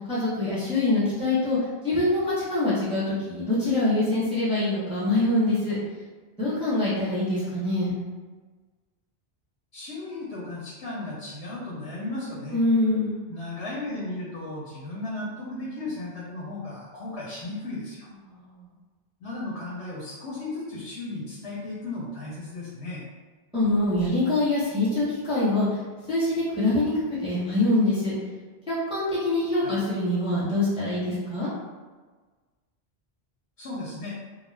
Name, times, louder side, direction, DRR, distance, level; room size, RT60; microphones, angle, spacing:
voice 1, 0.1-1.6 1.8-5.8 6.4-7.9 12.5-13.2 18.2-18.5 23.5-25.7 26.1-26.9 27.2-28.1 28.7-31.5, left 2 dB, 5° right, -11 dB, 0.7 m, -24 dB
voice 2, 9.7-12.6 13.3-18.1 19.2-23.0 29.6-29.8 33.6-34.1, left 2 dB, 90° left, -6 dB, 0.9 m, -35 dB
2.3 x 2.1 x 3.1 m, 1.4 s
omnidirectional pair, 1.1 m